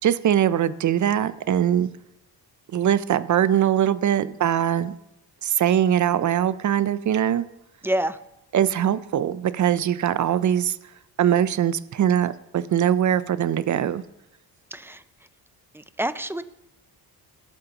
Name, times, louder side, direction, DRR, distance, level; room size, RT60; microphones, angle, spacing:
voice 1, 0.0-1.9 2.7-4.9 5.4-7.4 8.5-10.8 11.2-14.0, right 10 dB, 45° right, 15 dB, 0.6 m, -22 dB
voice 2, 7.8-8.2 14.7-15.0 15.7-16.4, right 1 dB, 5° right, 13 dB, 0.4 m, -27 dB
19.5 x 9.0 x 2.9 m, 0.88 s
cardioid pair, 100°, 40 cm